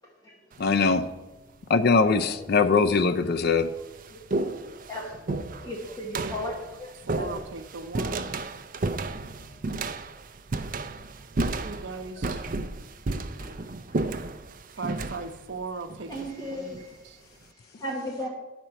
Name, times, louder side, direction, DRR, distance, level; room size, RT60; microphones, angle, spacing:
sound 1, 0.5-1.0 1.9-2.0 2.8-2.9 3.3-16.9, right 2 dB, 45° right, 0.5 m, -33 dB
voice 1, 0.6-1.0 1.7-3.7, left 4 dB, 55° left, 9 dB, 0.5 m, -21 dB
voice 2, 5.5-7.4 8.0-8.1 9.3-9.4 13.4-13.6 16.1-17.2 17.8-18.3, equal, 20° left, -2 dB, 1.2 m, -36 dB
voice 3, 7.1-8.3 11.6-12.4 14.8-17.2, right 3 dB, 80° right, 7 dB, 0.7 m, -38 dB
10.5 x 4.3 x 6.8 m, 1.1 s
head